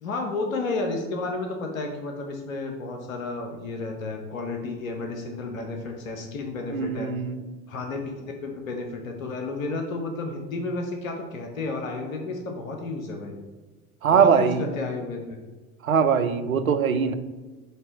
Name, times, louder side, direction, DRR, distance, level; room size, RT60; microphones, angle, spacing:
voice 1, 0.0-7.1 7.7-8.1 8.4-13.3 14.1-15.4, left 3 dB, 75° left, 3 dB, 1.0 m, -32 dB
voice 2, 6.7-7.4 14.0-14.6 15.8-17.1, right 6 dB, 85° right, 9 dB, 0.6 m, -21 dB
7.8 x 2.9 x 4.6 m, 1.3 s
figure-of-eight pair, 70°, 41 cm